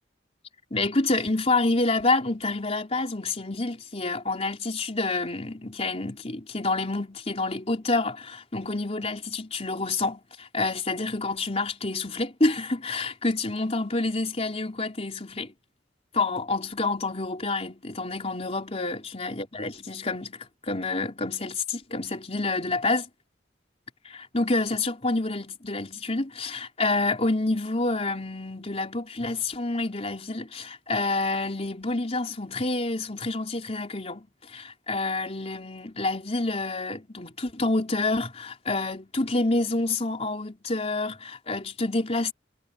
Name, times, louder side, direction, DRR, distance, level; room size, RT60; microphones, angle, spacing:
voice 1, 0.7-15.5 16.1-23.1 24.1-42.3, left 2 dB, 35° left, 3.8 m, -28 dB
head